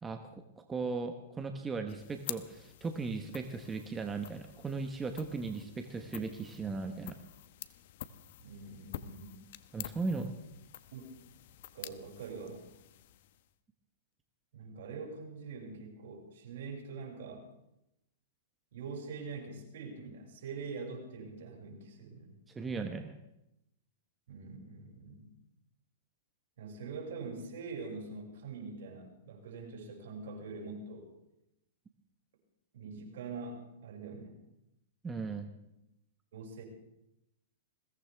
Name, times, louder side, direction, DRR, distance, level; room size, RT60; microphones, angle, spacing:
voice 1, 0.0-7.2 9.7-10.4 22.5-23.1 35.0-35.5, right 4 dB, 15° right, 6 dB, 1.1 m, -37 dB
sound 1, 1.9-13.6, left 13 dB, 60° left, 0.9 m, -49 dB
voice 2, 8.4-9.4 10.9-11.1 11.7-12.7 14.5-17.4 18.7-22.4 24.3-25.3 26.6-31.1 32.7-34.4 36.3-36.6, right 4 dB, 70° right, 0 dB, 6.2 m, -44 dB
21.5 x 17.0 x 3.5 m, 0.84 s
hypercardioid pair, 135°, 0 cm